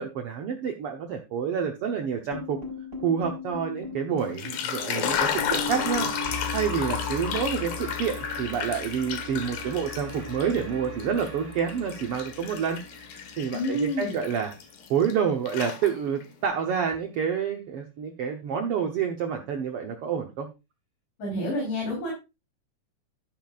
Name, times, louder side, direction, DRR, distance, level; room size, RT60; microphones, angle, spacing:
voice 1, 0.0-2.6 3.0-6.1 6.5-12.8 13.4-14.5 14.9-20.5, right 7 dB, 80° right, 4 dB, 1.3 m, -28 dB
sound 1, 2.3-14.5, left 3 dB, 15° right, 5.5 m, -38 dB
sound 2, 4.2-10.6 11.0-15.1 15.5-16.3, left 8 dB, 85° left, 3.2 m, -33 dB
voice 2, 13.5-14.1 21.2-22.1, left 1 dB, 65° left, -1 dB, 5.0 m, -28 dB
12.0 x 10.5 x 2.4 m, 0.26 s
omnidirectional pair, 4.0 m